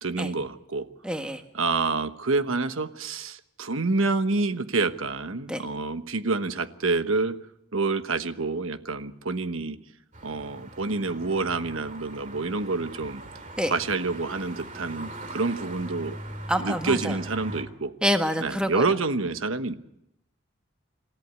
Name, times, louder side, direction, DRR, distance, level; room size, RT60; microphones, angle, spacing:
voice 1, 0.0-0.9 1.5-7.4 7.7-9.8 10.2-13.2 13.7-16.2 16.6-17.9 18.4-19.8, right 3 dB, 85° right, 10 dB, 1.2 m, -27 dB
voice 2, 1.0-1.4 5.5-5.6 13.6-13.7 16.5-17.1 18.0-18.8, equal, 5° right, 5 dB, 1.5 m, -26 dB
sound 1, 10.1-17.6, right 1 dB, 35° right, 2.2 m, -40 dB
27.0 x 14.5 x 8.4 m, 0.82 s
head